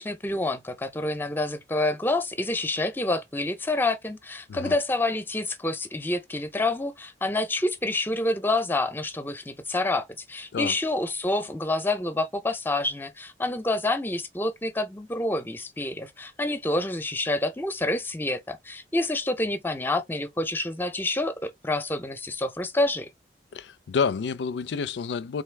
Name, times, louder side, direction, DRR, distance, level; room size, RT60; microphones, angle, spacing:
voice 1, 0.0-23.1, left 2 dB, 10° left, 0.6 m, -28 dB
voice 2, 23.5-25.4, left 5 dB, 85° left, 0.4 m, -29 dB
3.8 x 3.3 x 3.3 m
head